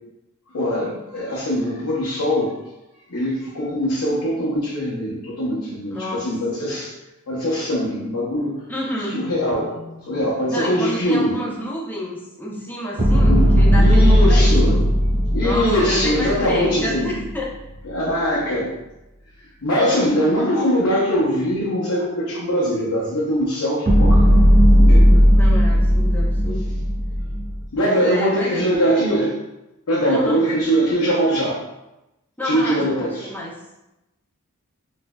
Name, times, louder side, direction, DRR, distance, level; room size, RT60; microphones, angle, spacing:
voice 1, 0.5-2.5 3.1-6.9 7.3-8.6 9.1-11.6 13.3-13.5 13.8-14.8 15.3-17.1 17.8-18.7 19.6-24.3 24.8-25.2 27.7-29.4 29.9-31.6 32.4-33.3, equal, 85° left, -7 dB, 0.7 m, -22 dB
voice 2, 5.9-6.3 8.7-9.2 10.5-14.8 15.4-17.5 25.3-26.8 27.8-28.6 30.1-30.5 32.4-33.6, equal, 10° left, -4 dB, 0.6 m, -29 dB
sound 1, 13.0-17.3 23.9-27.6, equal, 45° right, 1.0 m, -15 dB
4.1 x 2.6 x 2.2 m, 0.94 s
head